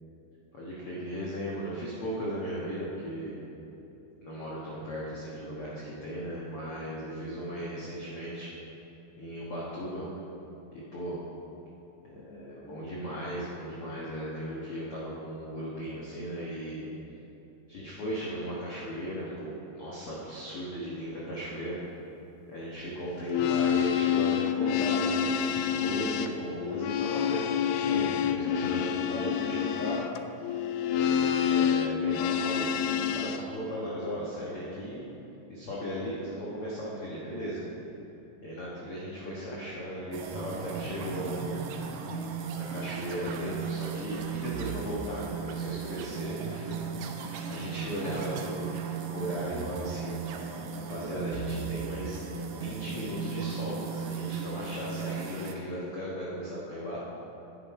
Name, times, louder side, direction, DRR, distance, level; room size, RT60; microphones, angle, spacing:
voice 1, 0.5-3.3 4.2-8.5 9.2-10.1 10.7-11.2 12.1-16.9 17.7-21.8 22.5-30.1 30.8-35.1 35.5-37.6 38.4-41.6 42.5-57.0, equal, 70° left, -6 dB, 1.3 m, -37 dB
sound 1, 23.2-33.4, left 9 dB, 85° left, 2.1 m, -28 dB
sound 2, 40.1-55.5, right 6 dB, 75° right, 2.1 m, -36 dB
10.5 x 9.9 x 4.7 m, 3.0 s
omnidirectional pair, 4.7 m